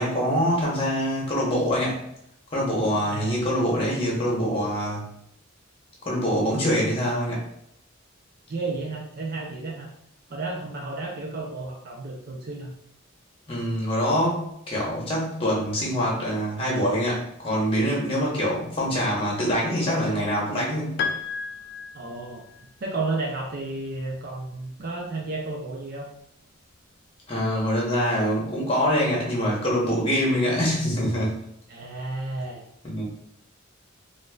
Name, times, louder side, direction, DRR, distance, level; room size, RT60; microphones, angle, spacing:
voice 1, 0.0-2.0 2.5-5.0 6.0-7.4 13.5-21.0 27.3-31.4 32.8-33.0, equal, 25° left, -4 dB, 1.0 m, -24 dB
voice 2, 3.1-3.4 8.5-9.9 10.3-12.7 21.9-22.4 22.8-26.1 31.7-32.6, right 3 dB, 50° right, -1 dB, 0.5 m, -32 dB
Piano, 21.0-22.7, left 5 dB, 55° left, 0.4 m, -32 dB
4.0 x 2.5 x 2.3 m, 0.72 s
head